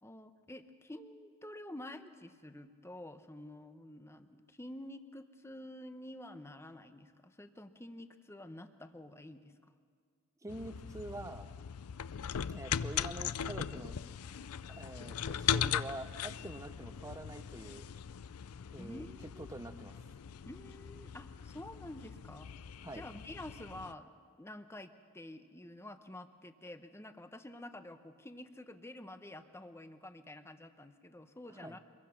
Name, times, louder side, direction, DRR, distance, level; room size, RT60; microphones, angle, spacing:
voice 1, 0.0-9.5 18.8-19.5 20.4-24.1 24.4-31.8, left 1 dB, 10° left, 9 dB, 0.9 m, -49 dB
voice 2, 10.4-11.5 12.5-14.0 14.7-17.8 18.7-19.9 22.8-23.0 31.6-31.8, right 1 dB, 15° right, 11 dB, 0.8 m, -46 dB
sound 1, 10.5-23.9, left 8 dB, 90° left, 0.5 m, -39 dB
25.0 x 21.5 x 5.9 m, 2.1 s
head